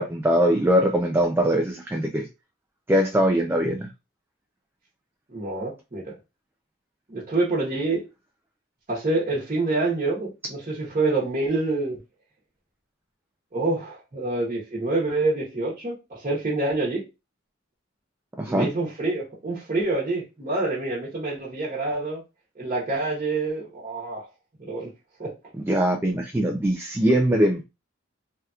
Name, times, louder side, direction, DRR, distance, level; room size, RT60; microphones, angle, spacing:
voice 1, 0.0-2.3 2.9-3.9 18.4-18.7 25.7-27.6, equal, 10° right, 0.4 m, -22 dB
voice 2, 5.3-6.1 7.1-8.1 8.9-12.0 13.5-17.0 18.4-22.2 22.6-24.3 24.6-24.9 25.2-25.3, right 2 dB, 35° right, 1.1 m, -27 dB
3.4 x 2.8 x 2.3 m
head